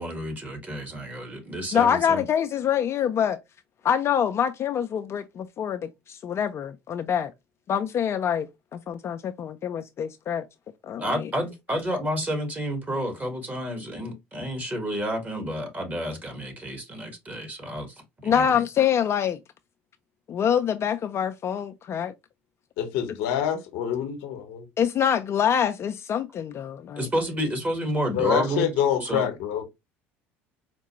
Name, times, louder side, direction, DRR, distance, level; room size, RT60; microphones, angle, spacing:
voice 1, 0.0-2.2 11.0-18.5 27.0-28.7 29.0-29.3, equal, 25° right, 1.5 m, -30 dB
voice 2, 1.7-3.4 3.8-7.3 7.7-10.4 10.8-11.3 18.2-19.4 20.3-22.1 24.8-27.1, left 8 dB, 40° left, 0.4 m, -25 dB
voice 3, 22.8-24.7 28.1-29.6, left 9 dB, 70° left, 0.8 m, -26 dB
4.6 x 2.2 x 2.9 m
hypercardioid pair, 70°, 7 cm